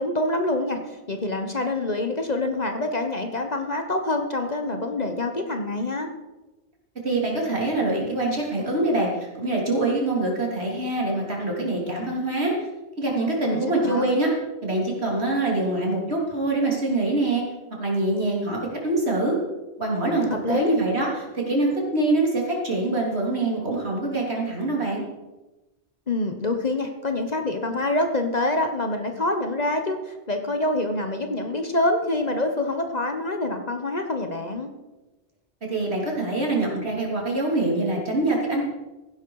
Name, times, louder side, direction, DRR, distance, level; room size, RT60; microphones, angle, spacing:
voice 1, 0.0-6.1 13.4-14.0 20.3-20.7 26.1-34.7, left 2 dB, 40° left, 5 dB, 1.2 m, -26 dB
voice 2, 7.0-12.6 13.0-14.3 14.6-17.4 17.8-19.4 19.8-25.0 35.7-38.6, right 2 dB, 65° right, -2 dB, 3.6 m, -24 dB
15.5 x 11.0 x 4.8 m, 1.1 s
omnidirectional pair, 1.2 m